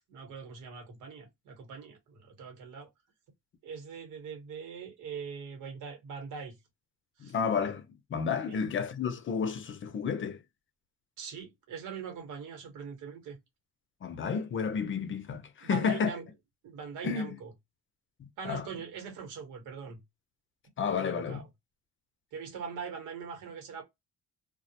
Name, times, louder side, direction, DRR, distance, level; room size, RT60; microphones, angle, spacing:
voice 1, 0.1-2.9 3.6-6.5 7.2-7.3 8.5-8.6 11.2-13.4 15.6-16.3 16.6-17.5 18.4-20.0 20.9-21.4 22.3-23.8, right 6 dB, 90° right, 1.2 m, -42 dB
voice 2, 7.2-10.4 14.0-16.1 17.0-17.3 18.4-18.7 20.8-21.4, left 6 dB, 40° left, 0.5 m, -31 dB
2.2 x 2.0 x 2.7 m
cardioid pair, 90°, 30 cm